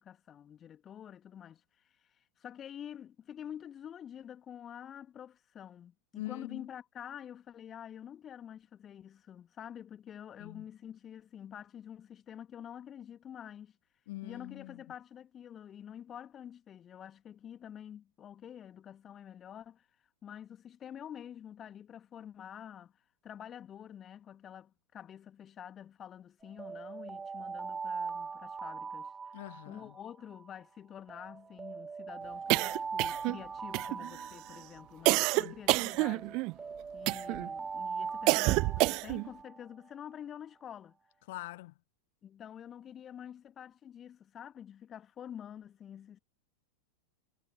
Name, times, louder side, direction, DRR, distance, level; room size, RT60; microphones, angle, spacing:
voice 1, 0.0-1.6 2.1-13.8 14.2-19.9 20.2-22.9 23.2-29.1 29.7-36.4 36.9-41.0 42.2-46.2, left 9 dB, 25° left, 2.4 m, -48 dB
voice 2, 6.2-6.7 10.4-10.6 14.1-14.7 29.3-29.8 35.4-35.5 41.3-41.7, left 19 dB, 50° left, 0.9 m, -43 dB
Alarm, 26.4-30.5 31.1-35.5 36.1-39.9, right 5 dB, 15° right, 4.7 m, -41 dB
sound 1, 32.5-33.4 33.7-34.3 35.1-36.5 37.1-37.5 38.3-39.3, right 25 dB, 40° right, 0.5 m, -28 dB
figure-of-eight pair, 90°, 0 cm